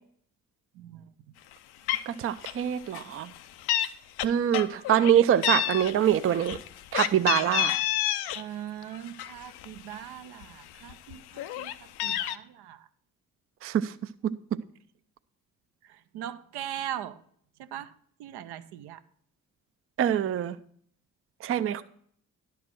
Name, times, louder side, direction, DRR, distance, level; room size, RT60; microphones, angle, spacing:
voice 1, 0.7-1.0 8.3-12.9 15.8-17.2 17.6-17.9 18.2-19.0 21.5-21.6, right 11 dB, 65° right, 0.8 m, -40 dB
Meow, 1.5-1.6 1.9-2.1 2.4-2.7 2.9-3.9 4.2-5.1 5.4-8.4 8.8-9.9 10.4-10.5 10.8-12.4, left 12 dB, 65° left, 0.7 m, -29 dB
voice 2, 2.1-3.3 4.2-6.6 6.9-7.7 13.6-13.9 20.0-20.6 21.4-21.8, right 10 dB, 30° right, 0.5 m, -24 dB
11.5 x 4.7 x 6.1 m
hypercardioid pair, 45°, 42 cm